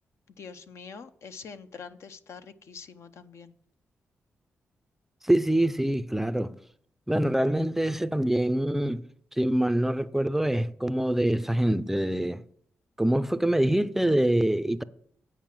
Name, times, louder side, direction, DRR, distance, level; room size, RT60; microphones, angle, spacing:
voice 1, 0.4-3.6, left 5 dB, 65° left, 0.7 m, -45 dB
voice 2, 5.2-6.6 7.1-9.0 9.3-12.4 13.0-14.8, right 1 dB, 5° right, 0.4 m, -25 dB
9.2 x 4.8 x 7.5 m
cardioid pair, 70°, 5 cm